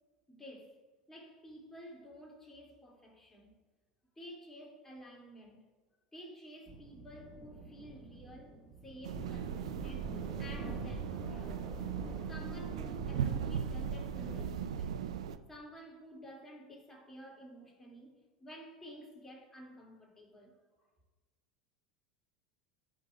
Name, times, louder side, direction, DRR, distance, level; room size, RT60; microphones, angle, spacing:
voice 1, 0.3-0.8 1.1-3.6 4.1-5.6 6.1-11.7 12.3-15.1 15.5-20.6, equal, 15° left, 2.3 m, -52 dB
sound 1, 6.7-15.0, right 3 dB, 15° right, 1.5 m, -46 dB
sound 2, 9.0-15.4, right 8 dB, 80° right, 0.4 m, -38 dB
13.0 x 5.3 x 2.3 m
hypercardioid pair, 80°, 3 cm